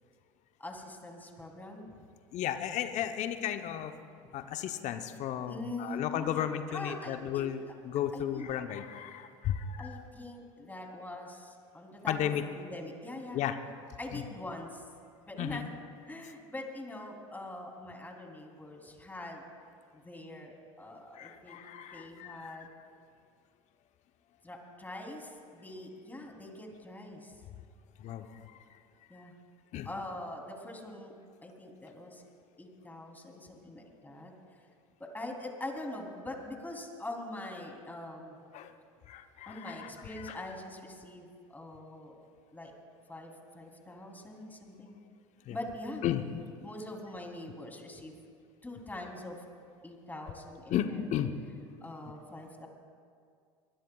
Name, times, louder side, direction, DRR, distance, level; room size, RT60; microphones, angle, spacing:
voice 1, 0.6-1.9 5.5-7.5 8.1-8.5 9.8-12.3 12.5-13.4 14.0-14.8 15.3-15.7 16.1-19.4 19.9-21.6 21.9-22.7 24.4-27.3 29.1-29.3 29.8-31.1 31.4-32.2 32.6-34.3 35.0-38.4 39.5-42.1 42.5-42.7 43.1-45.0 45.5-46.0 46.6-48.1 48.6-49.4 49.8-51.2 51.8-52.7, left 1 dB, 10° left, 1 dB, 3.2 m, -43 dB
voice 2, 2.3-4.0 4.3-10.0 12.1-12.4 13.3-13.6 14.1-14.2 15.4-15.6 21.1-22.7 28.0-28.6 29.7-29.9 38.5-38.7 39.1-39.9 40.2-40.4 45.5-45.6 46.0-46.2 50.7-51.3, left 10 dB, 45° left, 8 dB, 0.9 m, -34 dB
23.5 x 20.5 x 2.4 m, 2.2 s
hypercardioid pair, 80°, 16 cm